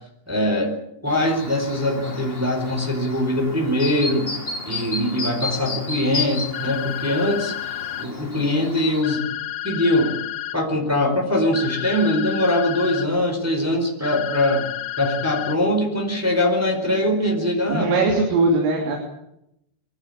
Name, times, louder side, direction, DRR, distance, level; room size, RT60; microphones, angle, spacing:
voice 1, 0.3-0.7 1.0-4.3 4.6-7.5 8.0-9.3 9.6-10.1 10.5-14.7 15.0-17.9, left 1 dB, 5° right, 2 dB, 3.5 m, -22 dB
Chirp tweet, 1.1-9.0, left 3 dB, 30° left, 1.1 m, -33 dB
sound 1, 6.5-8.1 9.0-10.6 11.5-13.1 14.0-15.6, left 12 dB, 75° left, 2.7 m, -31 dB
voice 2, 17.7-19.0, right 3 dB, 75° right, 1 dB, 5.8 m, -20 dB
23.5 x 15.0 x 8.7 m, 0.80 s
omnidirectional pair, 6.0 m